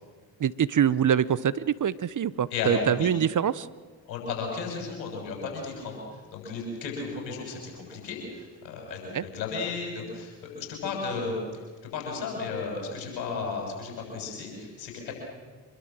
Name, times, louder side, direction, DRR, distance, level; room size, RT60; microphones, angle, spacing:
voice 1, 0.4-3.7 9.1-9.2, right 8 dB, 40° right, 18 dB, 0.9 m, -24 dB
voice 2, 2.5-3.1 4.1-6.0 6.3-11.5 11.9-15.1, left 4 dB, 85° left, 1 dB, 6.9 m, -34 dB
25.5 x 22.0 x 7.6 m, 1.4 s
hypercardioid pair, 45°, 50 cm